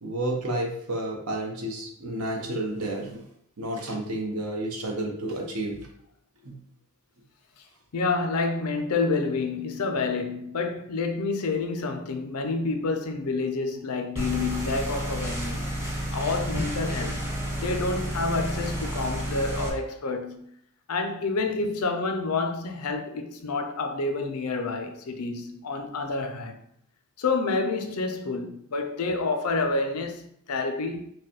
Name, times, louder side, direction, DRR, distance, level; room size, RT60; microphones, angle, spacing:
voice 1, 0.0-3.2 3.6-5.9 6.4-6.6 16.5-16.6, right 1 dB, 75° right, 0.9 m, -31 dB
voice 2, 7.9-15.8 16.1-17.3 17.6-20.4 20.9-26.6 27.2-31.1, left 3 dB, 90° left, 0.5 m, -28 dB
sound 1, 14.2-19.7, right 1 dB, 10° right, 0.8 m, -31 dB
4.7 x 2.2 x 3.0 m
head